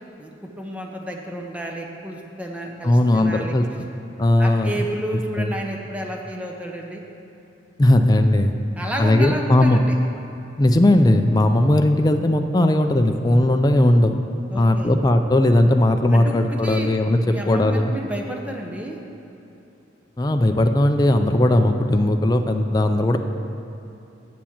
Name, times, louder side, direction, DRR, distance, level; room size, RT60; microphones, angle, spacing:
voice 1, 0.2-3.6 4.4-7.0 8.8-9.9 14.5-14.9 16.1-16.9 17.2-19.0, right 1 dB, 5° right, 0 dB, 0.8 m, -31 dB
voice 2, 2.8-3.7 4.2-4.8 5.4-5.5 7.8-8.5 9.0-9.8 10.6-14.2 14.6-17.9 20.2-23.2, left 1 dB, 20° left, 6 dB, 0.4 m, -18 dB
7.5 x 7.1 x 7.1 m, 2.9 s
head